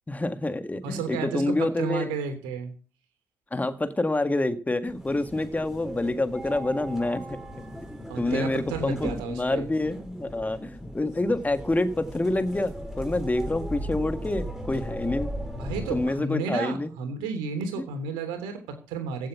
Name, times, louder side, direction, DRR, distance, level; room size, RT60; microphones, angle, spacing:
voice 1, 0.1-2.2 3.5-7.7 8.2-15.3 15.9-16.9 17.8-17.9, left 2 dB, 15° left, 10 dB, 1.9 m, -27 dB
voice 2, 0.8-2.7 8.1-9.7 15.6-19.3, right 5 dB, 70° right, 8 dB, 3.3 m, -32 dB
sound 1, 4.9-16.1, equal, 5° right, 5.7 m, -37 dB
15.5 x 7.5 x 7.2 m, 0.37 s
figure-of-eight pair, 45°, 9 cm